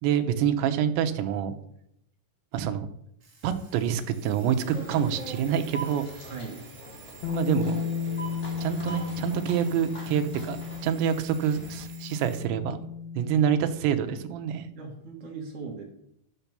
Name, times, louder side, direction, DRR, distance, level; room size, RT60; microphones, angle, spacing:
voice 1, 0.0-1.6 2.5-2.9 3.4-6.1 7.3-7.8 8.6-10.6 10.8-12.8 13.2-14.7, right 9 dB, 85° right, 8 dB, 3.1 m, -26 dB
Alarm, 3.2-12.5, right 5 dB, 35° right, 2.9 m, -51 dB
sound 1, 4.6-11.8, equal, 25° left, 1.7 m, -42 dB
voice 2, 6.3-6.6 14.8-15.8, right 4 dB, 55° right, 1 dB, 2.6 m, -38 dB
Bass guitar, 7.2-13.5, left 6 dB, 90° left, 1.5 m, -34 dB
12.5 x 6.0 x 6.8 m, 0.75 s
omnidirectional pair, 5.1 m